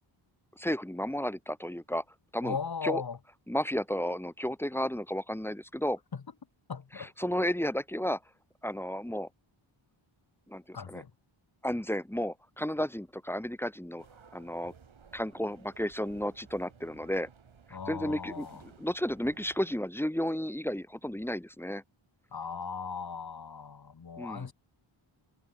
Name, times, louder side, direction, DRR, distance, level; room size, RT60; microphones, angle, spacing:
voice 1, 0.6-2.0 2.3-2.6 2.8-3.0 3.5-6.0 7.0-8.2 8.6-9.3 10.5-11.0 11.6-14.0 14.3-14.7 15.1-17.3 17.9-21.8 24.2-24.5, equal, 5° left, 0.9 m, -33 dB
voice 2, 2.4-3.2 6.1-6.2 6.7-7.1 10.7-11.1 17.7-18.6 22.3-24.5, left 6 dB, 50° left, 2.1 m, -38 dB
sound 1, 14.0-19.7, right 6 dB, 70° right, 7.0 m, -57 dB
wide cardioid pair, 95°, 49 cm